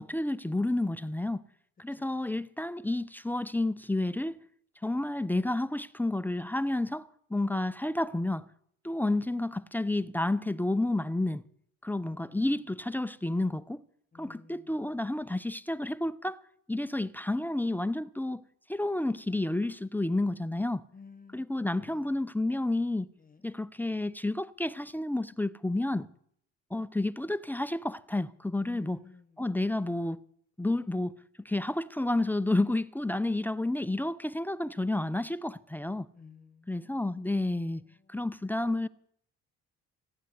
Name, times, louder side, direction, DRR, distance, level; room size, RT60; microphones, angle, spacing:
voice 1, 0.0-1.4 1.8-4.4 4.8-8.5 8.8-11.4 11.8-13.8 14.2-16.4 16.7-18.4 18.7-20.8 21.3-23.1 23.4-26.1 26.7-29.0 29.4-30.2 30.6-36.1 36.7-37.8 38.1-38.9, left 2 dB, 5° left, 0.5 m, -30 dB
voice 2, 12.1-12.5 14.1-14.7 20.9-22.2 23.2-23.5 28.6-29.4 36.1-37.3 37.7-38.2, left 4 dB, 30° left, 1.1 m, -54 dB
16.5 x 9.7 x 8.0 m
cardioid pair, 90°, 30 cm